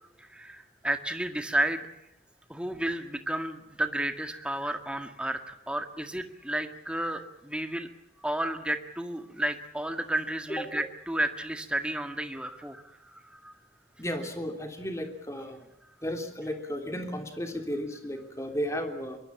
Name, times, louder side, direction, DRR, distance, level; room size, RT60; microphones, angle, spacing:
voice 1, 0.2-1.9 2.5-7.9 8.2-13.5, right 1 dB, 5° right, 6 dB, 1.9 m, -32 dB
voice 2, 14.0-15.7 16.0-19.2, equal, 15° left, 4 dB, 3.2 m, -34 dB
23.5 x 23.0 x 7.2 m, 0.84 s
head